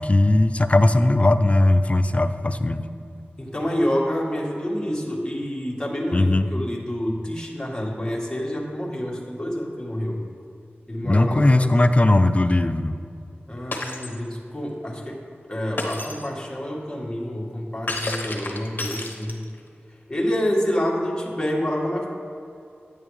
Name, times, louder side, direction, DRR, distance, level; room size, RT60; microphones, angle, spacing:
voice 1, 0.0-2.8 6.1-6.5 11.0-13.0, left 2 dB, 30° left, 10 dB, 0.4 m, -18 dB
voice 2, 3.4-10.2 10.9-11.7 13.5-15.2 15.5-19.4 20.1-22.1, equal, 15° left, -3 dB, 1.7 m, -27 dB
Shatter, 13.7-14.2 15.8-16.3 17.9-19.6, left 2 dB, 50° left, 1.1 m, -30 dB
9.5 x 9.0 x 3.2 m, 2.6 s
wide cardioid pair, 75°, 4 cm